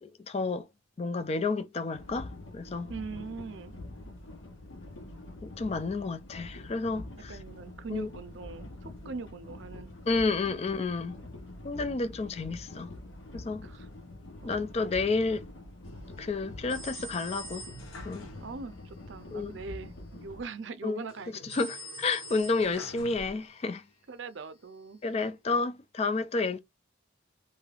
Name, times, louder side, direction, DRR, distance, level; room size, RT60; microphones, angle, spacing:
voice 1, 0.0-0.7 1.0-2.9 5.4-7.4 7.9-8.1 10.1-11.2 11.6-12.9 13.3-13.7 14.4-15.4 16.2-17.6 18.0-18.3 19.3-19.6 20.8-21.0 21.4-23.8 25.0-26.6, left 3 dB, 30° left, 0.3 m, -31 dB
sound 1, 1.9-20.4, left 2 dB, 75° left, 0.7 m, -45 dB
voice 2, 2.9-3.8 7.3-10.6 13.6-13.9 14.4-14.6 18.4-20.0 20.2-21.6 24.1-25.0, right 4 dB, 65° right, 0.5 m, -42 dB
sound 2, 15.8-18.9 19.2-19.3 21.1-23.8 24.4-25.2, equal, 90° left, 1.0 m, -50 dB
sound 3, 16.7-18.1 21.5-23.1, right 1 dB, 10° left, 0.9 m, -44 dB
3.2 x 2.6 x 2.4 m
head